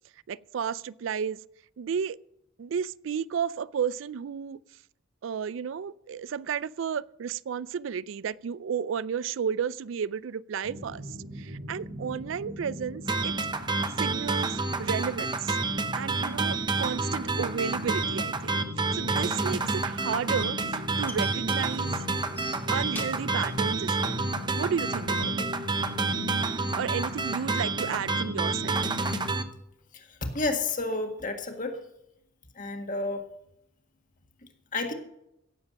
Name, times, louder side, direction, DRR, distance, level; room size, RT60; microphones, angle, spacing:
voice 1, 0.3-1.4 1.8-2.2 2.6-4.6 5.2-11.1 11.4-13.3 14.0-15.6 15.9-18.6 18.9-22.1 22.7-24.3 24.5-25.5 26.7-28.8, right 7 dB, 75° right, 0.4 m, -33 dB
sound 1, 10.6-29.4, left 1 dB, 50° right, 1.6 m, -39 dB
sound 2, 13.1-29.4, right 3 dB, 25° right, 0.8 m, -29 dB
sound 3, 20.1-24.9, left 2 dB, 10° left, 1.4 m, -46 dB
voice 2, 29.9-31.8 32.6-33.3 34.7-34.9, left 3 dB, 40° left, 1.8 m, -31 dB
16.5 x 7.5 x 6.3 m
head